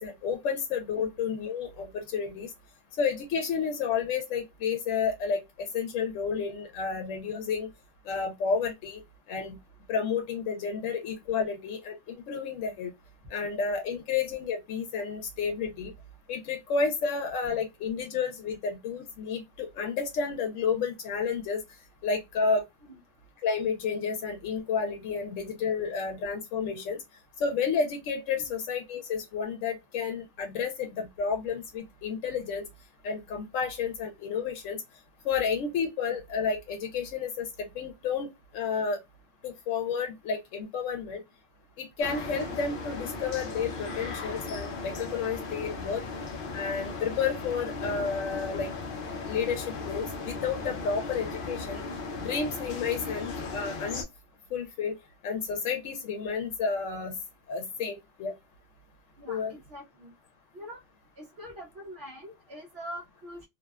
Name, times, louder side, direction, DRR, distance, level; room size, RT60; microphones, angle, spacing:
voice 1, 0.0-2.5 3.0-7.7 8.1-9.0 9.3-9.6 9.9-12.9 13.3-15.9 16.3-21.6 22.0-22.6 23.4-27.0 27.4-32.6 33.0-34.8 35.2-39.0 39.4-41.2 41.8-46.0 46.5-48.7 49.2-51.8 52.2-54.0 54.5-55.0 55.2-57.2 57.5-58.4 59.3-59.5, left 5 dB, 90° left, 0.9 m, -31 dB
sound 1, 42.0-54.0, left 3 dB, 55° left, 0.6 m, -37 dB
voice 2, 59.2-60.1 60.5-60.8 61.2-63.4, equal, 60° right, 0.9 m, -44 dB
2.6 x 2.1 x 2.2 m
omnidirectional pair, 1.3 m